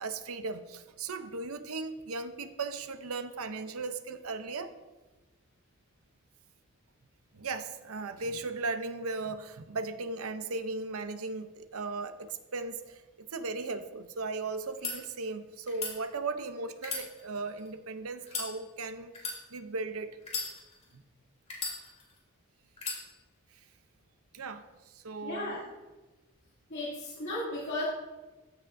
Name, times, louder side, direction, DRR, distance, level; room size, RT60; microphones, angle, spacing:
voice 1, 0.0-4.7 7.3-19.2 19.5-20.2 20.9-21.0 24.3-25.6, right 3 dB, 85° right, 9 dB, 0.7 m, -37 dB
sound 1, 14.7-14.9 15.7-15.9 16.8-17.7 18.2-18.5 19.1-19.4 20.2-20.9 21.5-22.2 22.8-23.0, left 4 dB, 30° left, 2.6 m, -36 dB
voice 2, 25.2-25.6 26.7-27.8, left 1 dB, 55° left, -9 dB, 2.5 m, -35 dB
14.5 x 7.1 x 2.7 m, 1.2 s
head